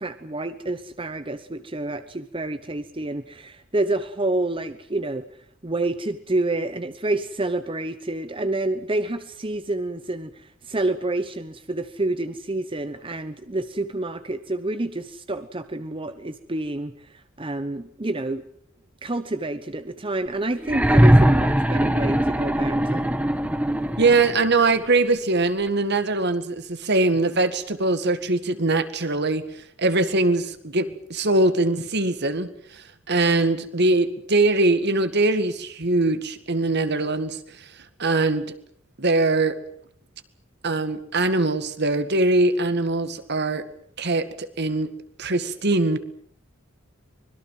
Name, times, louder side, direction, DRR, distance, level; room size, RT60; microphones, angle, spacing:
voice 1, 0.0-5.3 5.6-16.9 17.4-18.4 19.0-23.1, right 2 dB, 25° right, 11 dB, 1.0 m, -28 dB
sound 1, 20.6-24.5 25.7-25.8, right 1 dB, 5° right, 1.5 m, -20 dB
voice 2, 24.0-29.4 29.8-37.7 38.0-38.4 39.0-39.6 40.6-43.7 44.0-44.9 45.2-46.0, right 2 dB, 55° right, 11 dB, 2.0 m, -22 dB
25.0 x 21.5 x 7.6 m, 0.64 s
head